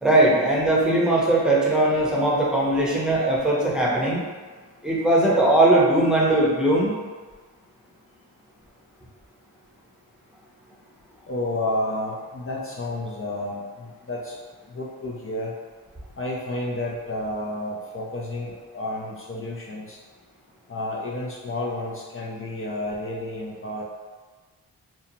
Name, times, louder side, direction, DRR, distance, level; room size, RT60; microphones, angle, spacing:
voice 1, 0.0-4.2 4.8-6.9, right 1 dB, ahead, -5 dB, 0.8 m, -20 dB
voice 2, 11.3-14.3 14.7-15.5 16.2-20.0 20.7-23.8, left 1 dB, 35° left, -4 dB, 0.5 m, -31 dB
2.7 x 2.1 x 2.7 m, 1.4 s
cardioid pair, 40°, 40 cm